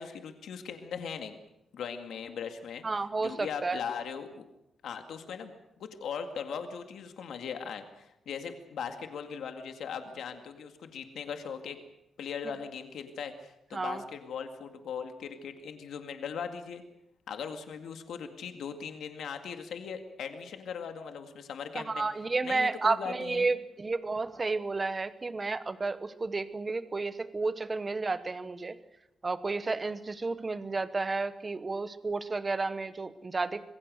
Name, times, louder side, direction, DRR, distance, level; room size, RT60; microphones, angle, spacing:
voice 1, 0.0-1.3 1.7-2.8 3.2-4.5 4.8-11.8 12.2-16.8 17.3-22.1 22.4-23.5, left 6 dB, 70° left, 6 dB, 2.1 m, -39 dB
voice 2, 2.8-3.8 13.7-14.0 21.7-28.8 29.2-33.6, right 3 dB, 20° right, 13 dB, 1.0 m, -31 dB
26.0 x 22.0 x 6.4 m, 0.86 s
wide cardioid pair, 180°, 0 cm